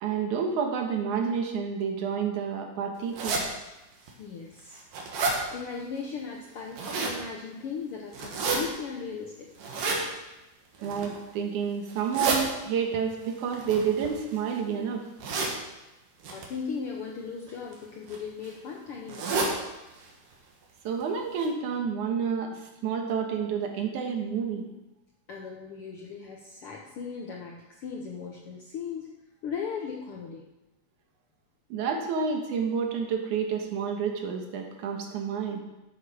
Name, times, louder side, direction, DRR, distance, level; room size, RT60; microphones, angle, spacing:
voice 1, 0.0-3.4 10.8-15.1 20.8-24.7 31.7-35.6, right 6 dB, 70° right, 3 dB, 2.7 m, -29 dB
sound 1, 3.1-3.4 4.1-4.2 4.6-5.4 6.5-7.2 8.1-8.6 9.6-10.0 10.8-11.2 11.9-12.4 13.5-14.5 15.2-15.5 16.2-16.5 17.5-17.7 18.1-18.2 18.4-18.5 19.1-19.5 19.9-20.1 20.3-20.4 21.0-21.1 21.4-21.5, right 4 dB, 85° right, 3.3 m, -29 dB
voice 2, 4.2-4.8 5.5-9.5 16.3-19.5 25.3-29.1 29.4-30.4, left 6 dB, 70° left, 0 dB, 1.3 m, -37 dB
12.0 x 7.7 x 4.9 m, 1.0 s
omnidirectional pair, 3.7 m